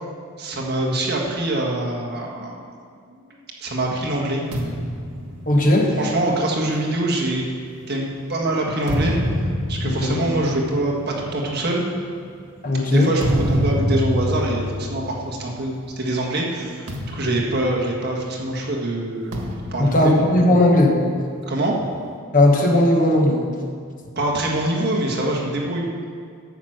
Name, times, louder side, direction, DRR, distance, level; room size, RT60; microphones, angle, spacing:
voice 1, 0.4-2.6 3.1-3.3 3.6-4.4 6.0-7.4 7.9-9.2 9.7-11.8 12.9-19.4 19.7-20.1 21.5-21.7 24.1-25.9, right 1 dB, 45° right, -2 dB, 1.6 m, -24 dB
sound 1, 4.5-8.1 8.6-16.0 16.3-16.5 16.9-18.5 19.3-21.1, equal, 85° right, 1.7 m, -28 dB
voice 2, 5.5-6.0 9.8-10.2 12.6-13.1 17.4-17.5 19.8-21.0 22.3-23.4, left 1 dB, 35° left, 0 dB, 1.3 m, -17 dB
11.5 x 6.0 x 7.9 m, 2.2 s
head